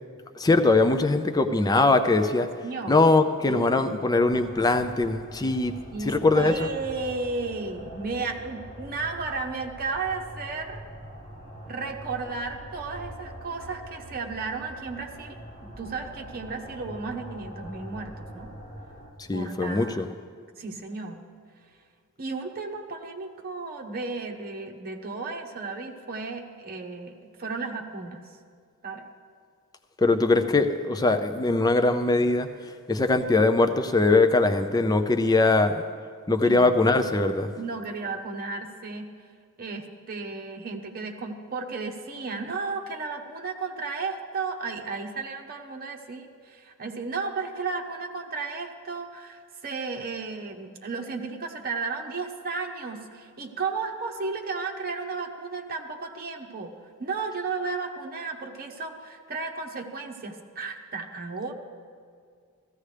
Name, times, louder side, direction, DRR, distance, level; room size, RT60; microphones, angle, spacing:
voice 1, 0.3-2.5 2.9-5.7 6.0-6.7 19.3-20.1 30.0-32.5 32.9-35.8 36.3-37.5, left 3 dB, 15° left, 7 dB, 0.4 m, -21 dB
voice 2, 2.6-3.0 3.5-3.9 5.9-10.8 11.7-15.4 15.8-18.5 19.3-20.1 20.6-21.2 22.2-28.2 28.8-29.1 36.4-36.8 37.6-39.1 39.6-56.7 57.0-61.5, right 4 dB, 45° right, 2 dB, 1.0 m, -34 dB
sound 1, 4.2-19.1, right 1 dB, 35° left, 4.0 m, -43 dB
15.5 x 14.5 x 3.3 m, 2.2 s
head